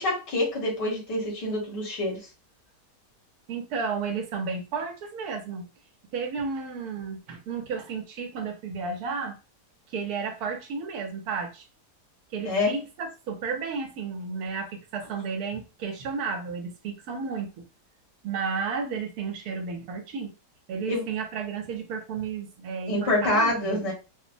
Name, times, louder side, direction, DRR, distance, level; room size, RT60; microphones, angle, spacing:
voice 1, 0.0-2.3 12.4-12.7 20.9-21.0 22.9-23.9, left 2 dB, 85° left, 2.0 m, -26 dB
voice 2, 3.5-5.7 6.1-9.4 9.9-11.7 12.3-17.6 18.2-20.3 20.7-23.9, right 5 dB, 70° right, 1.2 m, -32 dB
4.9 x 2.0 x 2.5 m
omnidirectional pair, 1.8 m